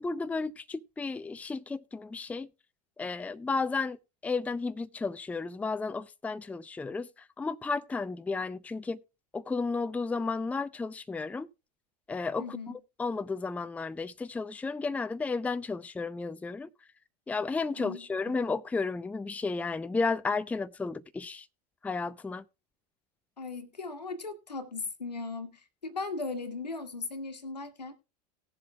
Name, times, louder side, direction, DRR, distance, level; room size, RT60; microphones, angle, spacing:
voice 1, 0.0-2.5 3.0-7.1 7.4-9.0 9.3-11.5 12.1-12.6 13.0-16.7 17.3-21.5 21.8-22.4, left 4 dB, 5° left, 0.5 m, -33 dB
voice 2, 12.4-12.8 17.8-18.4 23.4-27.9, left 3 dB, 85° left, 1.7 m, -38 dB
19.0 x 7.5 x 2.3 m
figure-of-eight pair, 80°, 21 cm